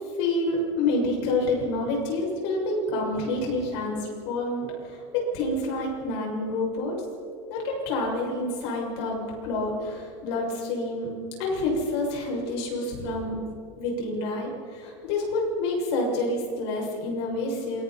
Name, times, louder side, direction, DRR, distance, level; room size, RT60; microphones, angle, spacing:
voice 1, 0.2-6.9 7.5-11.1 11.4-13.4 13.8-17.8, left 2 dB, 60° left, -2 dB, 6.9 m, -28 dB
27.5 x 22.5 x 4.4 m, 2.4 s
supercardioid pair, 180°, 16 cm